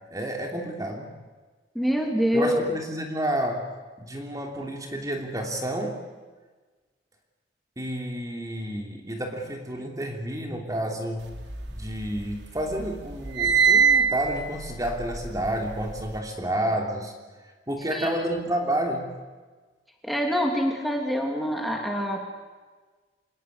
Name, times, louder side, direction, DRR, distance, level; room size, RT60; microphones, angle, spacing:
voice 1, 0.1-1.1 2.3-3.7 4.0-6.0 7.8-11.4 11.7-17.1 17.7-19.2, right 1 dB, 20° right, 2 dB, 3.0 m, -30 dB
voice 2, 1.7-2.6 17.9-18.4 20.0-22.3, equal, ahead, 1 dB, 2.9 m, -26 dB
sound 1, 11.3-12.4 12.7-16.1, right 6 dB, 75° right, 2.8 m, -23 dB
27.5 x 20.5 x 8.3 m, 1.3 s
head